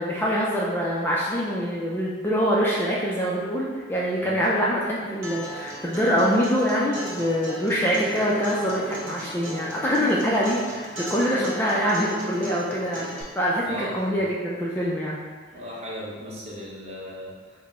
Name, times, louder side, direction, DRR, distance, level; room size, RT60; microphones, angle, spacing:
voice 1, 0.0-15.2, equal, 10° left, -5 dB, 0.3 m, -24 dB
Acoustic guitar, 5.2-13.2, right 1 dB, 75° right, 0.9 m, -36 dB
voice 2, 13.6-13.9 15.5-17.6, equal, 35° right, -5 dB, 0.8 m, -37 dB
4.2 x 2.0 x 4.2 m, 1.5 s
head